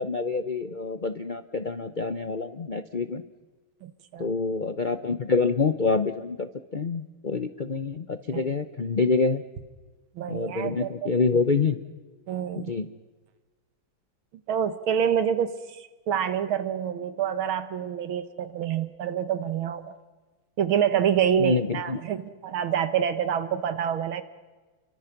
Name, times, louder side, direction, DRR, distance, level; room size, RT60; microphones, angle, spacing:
voice 1, 0.0-3.2 4.2-9.4 10.3-11.8 12.6-12.9 21.4-22.0, left 4 dB, 65° left, 10 dB, 0.4 m, -26 dB
voice 2, 3.8-4.3 8.3-8.4 10.2-11.1 12.3-12.7 14.5-19.9 20.6-24.2, right 8 dB, 80° right, 11 dB, 2.1 m, -27 dB
30.0 x 24.0 x 6.0 m, 1.3 s
omnidirectional pair, 2.2 m